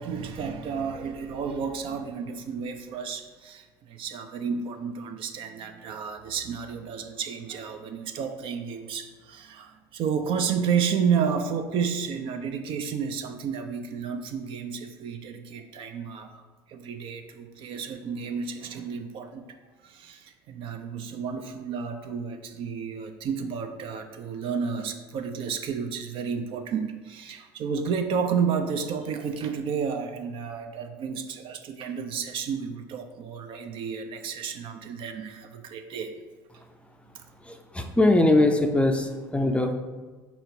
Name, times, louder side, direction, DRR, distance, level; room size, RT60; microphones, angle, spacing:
voice 1, 0.0-16.4 16.7-19.5 19.8-36.2, right 6 dB, 50° right, 6 dB, 0.5 m, -31 dB
voice 2, 37.4-39.7, left 2 dB, 10° left, 5 dB, 0.5 m, -22 dB
4.5 x 4.2 x 2.7 m, 1.3 s
hypercardioid pair, 70°, 11 cm